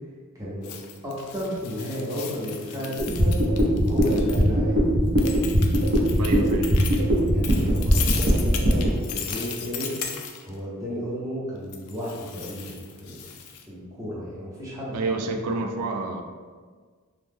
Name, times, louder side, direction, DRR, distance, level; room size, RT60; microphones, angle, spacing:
voice 1, 0.3-0.7 1.0-4.8 7.2-9.9 10.4-13.2 13.7-15.1 15.4-15.5, equal, 15° right, -8 dB, 0.8 m, -33 dB
sound 1, 0.6-4.5 5.2-10.5 11.7-13.6, left 7 dB, 75° left, 0.4 m, -36 dB
sound 2, 3.0-8.9, equal, 50° right, 0.7 m, -20 dB
voice 2, 6.2-6.8 14.9-16.2, right 3 dB, 80° right, 5 dB, 0.4 m, -28 dB
3.0 x 2.0 x 3.4 m, 1.5 s
head